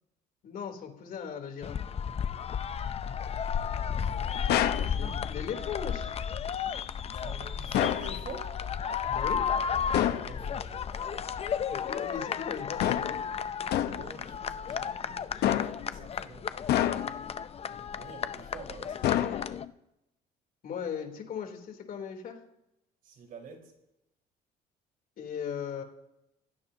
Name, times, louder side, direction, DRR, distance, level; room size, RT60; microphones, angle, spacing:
voice 1, 0.4-1.8 4.9-6.1 9.1-9.5 11.7-13.2 20.6-22.4 25.2-25.8, left 7 dB, 55° left, 3 dB, 3.7 m, -38 dB
sound 1, 1.6-19.7, left 7 dB, 35° left, 0.7 m, -33 dB
voice 2, 3.8-5.2 7.1-8.6 9.9-11.3 13.7-16.5 16.8-17.1 17.9-19.2 23.0-23.7, right 4 dB, 55° right, 1 dB, 4.8 m, -48 dB
sound 2, 4.5-4.9 7.7-8.1 9.9-10.3 12.8-13.2 13.7-14.1 15.4-15.9 16.7-17.3 19.0-19.7, left 11 dB, 75° left, 1.2 m, -27 dB
26.5 x 16.5 x 2.9 m, 0.85 s
cardioid pair, 110°, 17 cm